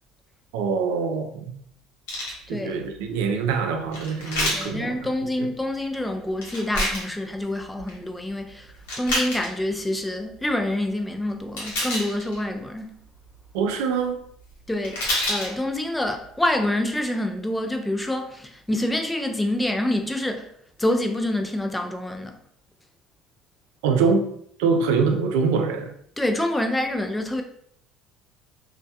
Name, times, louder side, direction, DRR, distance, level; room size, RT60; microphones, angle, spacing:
voice 1, 0.5-1.5 2.5-4.9 13.5-14.2 23.8-24.3 24.6-25.9, right 5 dB, 80° right, 0.4 m, -24 dB
sound 1, 2.1-2.4 3.9-4.7 6.4-7.1 7.6-8.0 8.7-9.5 11.6-12.4 14.5-14.6 14.8-15.5 16.1-16.2, left 1 dB, 85° left, 1.0 m, -27 dB
voice 2, 4.5-13.0 14.7-20.5 20.8-22.4 26.2-27.4, left 1 dB, 10° left, 0.4 m, -27 dB
2.2 x 2.1 x 2.7 m
supercardioid pair, 80°, 0 cm